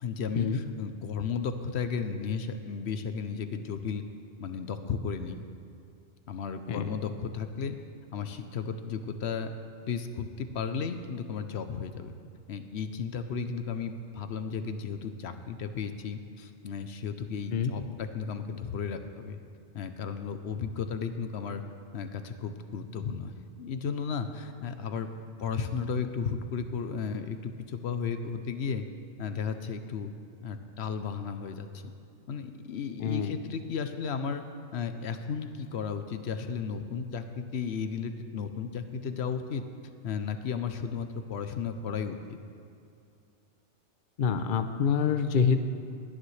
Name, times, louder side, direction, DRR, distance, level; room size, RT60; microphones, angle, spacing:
voice 1, 0.0-4.0 4.4-5.5 6.3-7.8 8.1-9.5 9.9-12.1 12.5-19.4 19.7-21.6 21.9-25.1 25.4-28.8 29.2-30.1 30.4-31.8 32.3-34.4 34.7-39.6 40.0-42.2, left 6 dB, 70° left, 8 dB, 0.9 m, -34 dB
voice 2, 33.0-33.3 44.2-45.6, left 6 dB, 55° left, 8 dB, 0.7 m, -26 dB
20.5 x 9.9 x 3.2 m, 2.5 s
omnidirectional pair, 1.2 m